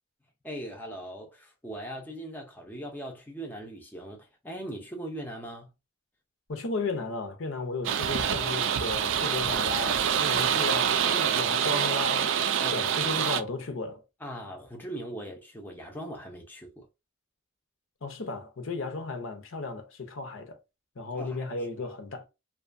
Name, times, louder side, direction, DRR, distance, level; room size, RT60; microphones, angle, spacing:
voice 1, 0.4-5.7 11.1-11.4 12.6-12.9 14.2-16.9 21.2-22.0, right 1 dB, 10° left, 0.5 m, -40 dB
voice 2, 6.5-12.4 12.7-14.0 18.0-20.6 21.0-22.3, left 3 dB, 70° left, 0.6 m, -35 dB
sound 1, 7.8-13.4, right 8 dB, 60° right, 0.3 m, -26 dB
2.6 x 2.2 x 2.5 m
head